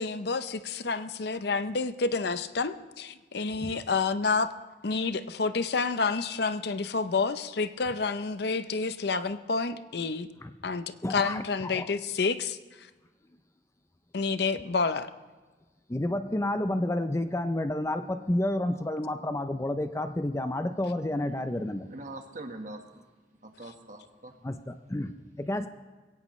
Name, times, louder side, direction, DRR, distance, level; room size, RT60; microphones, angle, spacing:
voice 1, 0.0-4.5 4.8-10.3 10.6-10.8 11.1-12.6 14.1-15.1, left 4 dB, 65° left, 12 dB, 0.7 m, -29 dB
voice 2, 11.0-11.9 15.9-21.9 24.4-25.7, left 1 dB, 15° left, 9 dB, 0.5 m, -30 dB
voice 3, 21.9-23.0 23.4-24.4, right 2 dB, 45° right, 5 dB, 1.5 m, -43 dB
21.5 x 17.0 x 3.2 m, 1.3 s
head